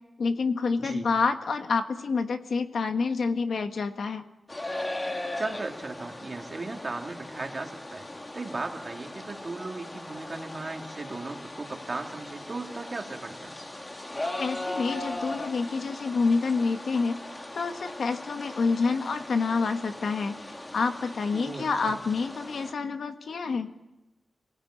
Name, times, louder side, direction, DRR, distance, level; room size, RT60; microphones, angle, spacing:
voice 1, 0.2-4.2 14.4-17.2 17.5-20.4 20.7-23.7, left 4 dB, 65° left, 7 dB, 1.6 m, -28 dB
sound 1, 4.5-22.7, left 1 dB, 20° left, 1.5 m, -39 dB
voice 2, 5.3-8.1 8.3-13.5 21.3-22.0, right 3 dB, 35° right, 2 dB, 2.3 m, -37 dB
27.0 x 18.5 x 8.9 m, 1.0 s
wide cardioid pair, 160°, 0 cm